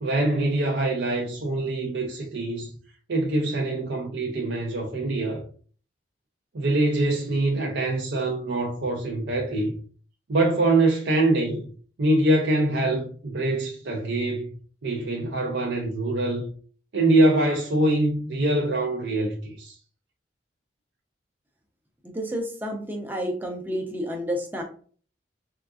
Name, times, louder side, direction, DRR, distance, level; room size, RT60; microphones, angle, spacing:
voice 1, 0.0-2.7 3.1-5.4 6.5-9.7 10.3-11.6 12.0-14.5 14.8-16.5 16.9-19.8, right 2 dB, 80° right, 0.5 m, -24 dB
voice 2, 22.0-24.6, equal, 10° right, 0.6 m, -30 dB
3.7 x 2.4 x 2.3 m
head